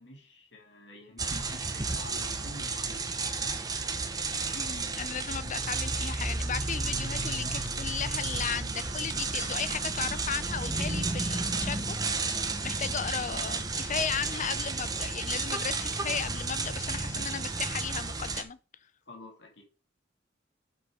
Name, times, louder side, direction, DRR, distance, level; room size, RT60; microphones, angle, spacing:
voice 1, 0.0-3.6 19.1-19.6, left 1 dB, 70° left, 2.5 m, -48 dB
sound 1, 1.2-18.4, right 3 dB, 20° right, 1.0 m, -32 dB
voice 2, 4.5-18.6, left 7 dB, 45° left, 0.6 m, -35 dB
7.7 x 6.0 x 4.9 m
head